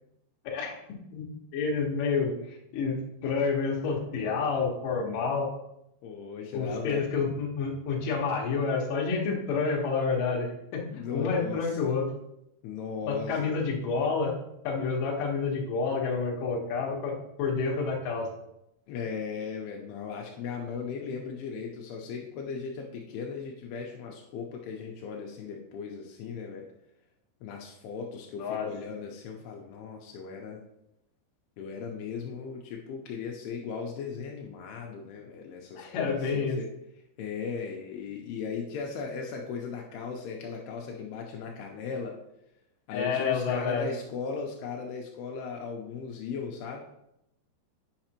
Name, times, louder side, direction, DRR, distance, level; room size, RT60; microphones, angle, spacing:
voice 1, 1.5-2.4 2.7-5.5 6.5-10.8 11.1-12.0 13.0-14.4 14.6-17.1 17.4-18.3 28.4-28.7 35.7-36.6 42.9-43.9, left 5 dB, 65° left, -2 dB, 2.4 m, -29 dB
voice 2, 6.0-7.0 10.9-11.8 12.6-13.6 18.9-26.7 27.4-30.6 31.6-36.7 37.2-42.2 42.9-46.8, left 5 dB, 85° left, 0 dB, 2.4 m, -37 dB
8.7 x 5.8 x 2.9 m, 0.82 s
omnidirectional pair, 5.2 m